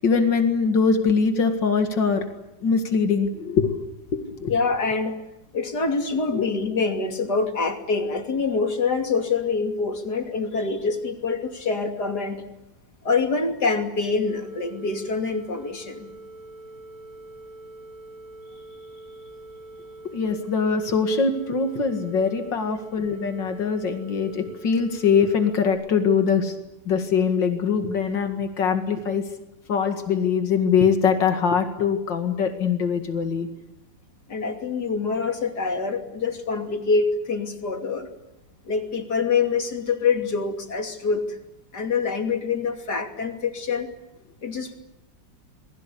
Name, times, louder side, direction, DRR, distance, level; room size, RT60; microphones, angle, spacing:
voice 1, 0.0-2.3 2.6-3.7 4.1-4.5 6.3-6.5 20.1-26.6 26.9-29.2 29.7-33.5, left 5 dB, 90° left, 6 dB, 2.8 m, -22 dB
voice 2, 4.5-5.2 5.5-12.4 13.0-16.1 34.3-38.1 38.6-41.4 41.7-43.9 44.4-44.8, left 4 dB, 65° left, 5 dB, 3.3 m, -25 dB
sound 1, 14.3-25.7, right 1 dB, 80° right, 7.1 m, -44 dB
28.0 x 22.0 x 8.5 m, 0.91 s
omnidirectional pair, 1.9 m